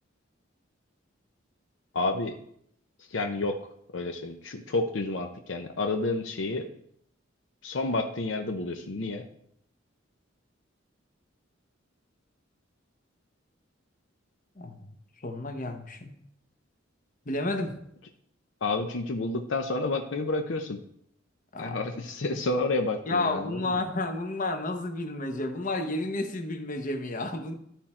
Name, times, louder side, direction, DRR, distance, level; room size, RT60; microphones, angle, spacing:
voice 1, 1.9-2.3 3.1-3.6 3.9-6.7 7.6-9.3 18.6-20.8 21.6-23.8, left 2 dB, 70° left, 4 dB, 0.7 m, -30 dB
voice 2, 15.2-16.1 17.3-17.8 21.5-21.8 23.1-27.6, left 2 dB, 45° left, 6 dB, 0.9 m, -31 dB
13.0 x 4.4 x 4.3 m, 0.71 s
head